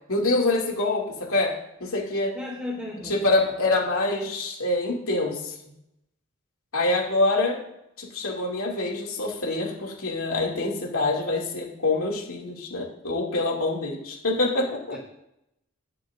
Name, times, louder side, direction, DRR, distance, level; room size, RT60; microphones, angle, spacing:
voice 1, 0.1-1.5 1.8-2.3 3.0-5.5 6.7-7.6 8.0-15.0, left 2 dB, 75° left, -2 dB, 2.6 m, -25 dB
voice 2, 2.3-3.1, left 2 dB, 5° right, -4 dB, 3.6 m, -34 dB
19.5 x 7.5 x 2.6 m, 0.81 s
head